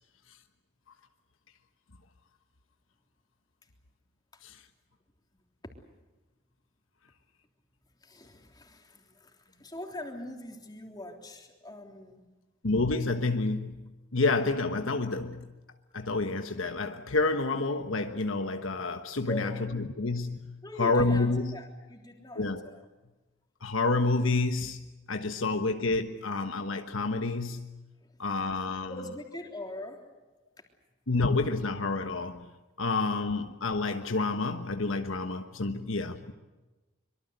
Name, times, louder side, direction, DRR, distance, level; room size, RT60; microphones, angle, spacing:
voice 1, 8.0-12.2 19.3-19.8 20.6-22.8 28.0-28.2 28.9-30.1, left 1 dB, 20° left, 3.4 m, -42 dB
voice 2, 12.6-15.5 15.9-21.5 22.4-22.6 23.6-27.8 28.2-28.9 31.1-32.5 32.8-36.3, left 3 dB, 70° left, 1.3 m, -29 dB
25.0 x 23.5 x 8.1 m
head